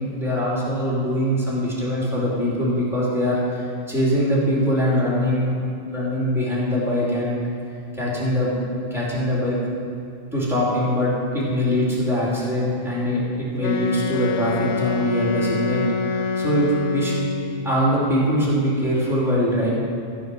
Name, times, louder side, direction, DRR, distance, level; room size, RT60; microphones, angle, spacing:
voice 1, 0.0-5.5 5.9-7.4 7.9-8.6 8.9-9.6 10.3-17.2 17.6-19.7, equal, ahead, -7 dB, 2.8 m, -22 dB
Wind instrument woodwind instrument, 13.6-17.8, left 4 dB, 75° left, 1.0 m, -26 dB
14.5 x 4.9 x 6.1 m, 2.4 s
omnidirectional pair, 1.4 m